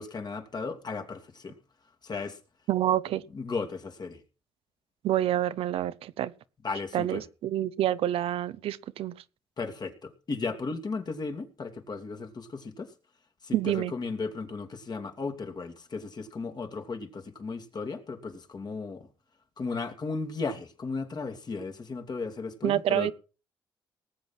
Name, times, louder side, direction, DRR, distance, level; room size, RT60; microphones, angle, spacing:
voice 1, 0.0-1.6 2.0-2.4 3.3-4.2 6.6-7.2 9.6-12.9 13.4-19.1 19.6-23.1, left 4 dB, 45° left, 2.6 m, -35 dB
voice 2, 2.7-3.2 5.0-6.3 6.9-9.1 13.5-13.9 22.6-23.1, right 12 dB, 80° right, 0.8 m, -27 dB
19.0 x 7.9 x 6.0 m
cardioid pair, 75°, 10 cm